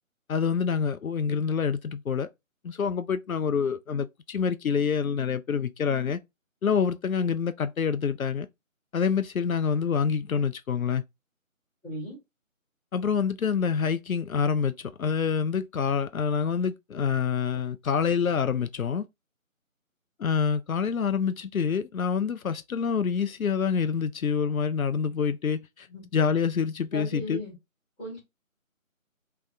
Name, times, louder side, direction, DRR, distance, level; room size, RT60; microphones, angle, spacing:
voice 1, 0.3-2.3 2.6-6.2 6.6-8.5 8.9-11.0 12.9-19.1 20.2-25.9 26.1-27.4, left 6 dB, 80° left, 0.6 m, -27 dB
voice 2, 11.8-12.2 25.9-26.1 26.9-27.5 28.0-28.2, equal, 5° left, 1.8 m, -36 dB
3.4 x 3.2 x 3.9 m
figure-of-eight pair, 160°, 41 cm